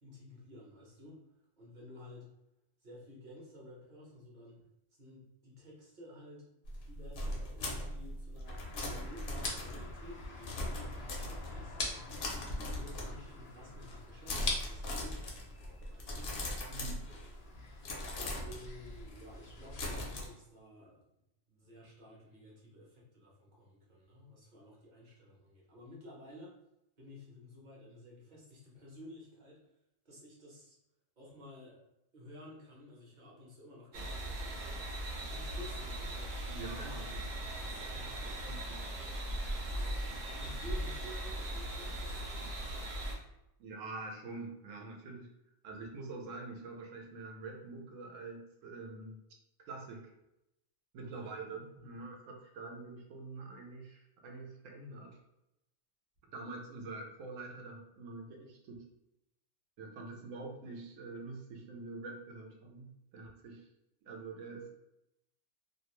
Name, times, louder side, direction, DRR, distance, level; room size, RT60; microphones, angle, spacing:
voice 1, 0.0-2.3 2.8-4.7 5.0-6.5 6.9-16.5 18.2-21.1 21.5-26.6 27.0-29.6 30.0-30.8 31.2-31.9 32.1-36.4 38.0-38.2 39.7-42.5 43.2-43.3 51.0-51.4 51.7-52.0, left 1 dB, 40° right, -4 dB, 0.9 m, -53 dB
sound 1, 6.7-11.8 12.1-13.4 13.7-14.0 14.3-17.5 17.8-20.3, left 1 dB, 60° left, 0.7 m, -40 dB
sound 2, 8.4-19.8, left 3 dB, 85° left, 0.3 m, -44 dB
voice 2, 16.7-17.1 36.5-37.4 37.9-38.8 43.6-45.3 45.6-49.2 49.7-50.1 50.9-55.2 56.3-58.8 59.8-63.6 64.0-64.7, right 3 dB, 80° right, 1 dB, 0.9 m, -46 dB
sound 3, 33.9-43.1, right 1 dB, 65° right, 0.5 m, -39 dB
2.5 x 2.0 x 3.0 m, 0.84 s
omnidirectional pair, 1.3 m